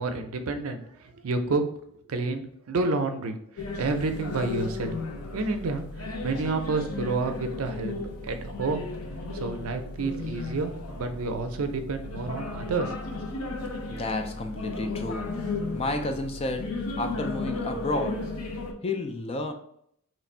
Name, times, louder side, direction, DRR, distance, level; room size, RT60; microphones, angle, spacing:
voice 1, 0.0-1.7 2.1-4.9 5.3-7.9 8.2-8.8 9.3-12.9, right 3 dB, 70° right, 0.5 m, -29 dB
sound 1, 3.6-18.7, left 2 dB, 75° left, 0.6 m, -35 dB
voice 2, 13.9-15.4 15.7-18.3 18.8-19.5, left 2 dB, 25° left, 0.3 m, -31 dB
3.2 x 2.5 x 4.2 m
head